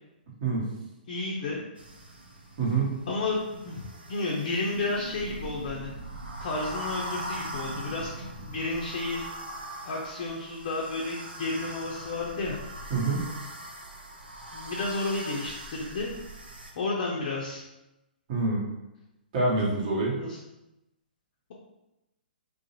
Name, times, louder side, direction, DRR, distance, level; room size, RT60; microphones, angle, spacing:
voice 1, 1.1-1.6 3.1-5.9 6.4-8.1 8.4-9.2 9.8-12.6 14.5-16.1 16.8-17.6 20.2-20.4, left 3 dB, 50° left, -3 dB, 0.5 m, -31 dB
sound 1, 1.8-16.7, right 1 dB, 90° right, 0.5 m, -41 dB
voice 2, 2.6-2.9 12.9-13.2 18.3-18.6 19.3-20.2, right 3 dB, 45° right, -5 dB, 1.0 m, -26 dB
2.4 x 2.0 x 2.8 m, 0.94 s
hypercardioid pair, 125°, 5 cm